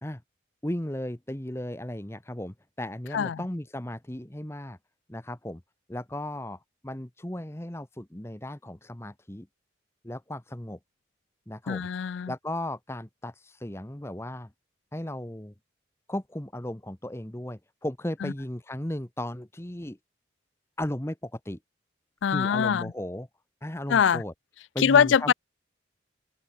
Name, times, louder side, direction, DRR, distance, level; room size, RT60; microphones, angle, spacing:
voice 1, 0.6-4.8 5.1-5.6 5.9-9.5 10.0-10.8 11.5-11.9 12.3-14.5 14.9-15.5 16.1-20.0 20.8-21.6 22.3-23.3 23.6-24.3 24.7-25.3, left 1 dB, 15° left, 1.0 m, -35 dB
voice 2, 3.1-3.4 11.7-12.3 18.2-18.3 22.2-22.9 23.9-24.2 24.8-25.3, left 7 dB, 75° left, 0.4 m, -23 dB
head